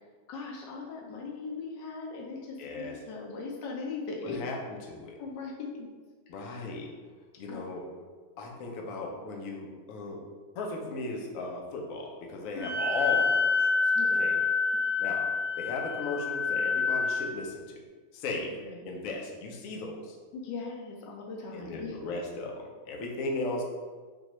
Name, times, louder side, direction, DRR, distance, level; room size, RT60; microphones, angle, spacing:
voice 1, 0.3-4.4 5.2-5.9 6.3-6.6 7.5-7.6 12.5-12.8 13.9-14.2 18.6-18.9 20.3-22.0, left 4 dB, 90° left, -1 dB, 1.3 m, -39 dB
voice 2, 2.6-3.0 4.2-5.2 6.3-6.9 7.4-7.9 8.4-10.2 10.6-13.7 14.2-14.4 15.0-15.3 15.6-17.8 18.1-18.5 18.9-20.2 21.5-23.6, left 2 dB, 70° left, 1 dB, 0.8 m, -36 dB
Wind instrument woodwind instrument, 12.6-17.3, left 4 dB, 70° right, 1.2 m, -27 dB
3.9 x 2.3 x 2.9 m, 1.5 s
omnidirectional pair, 1.9 m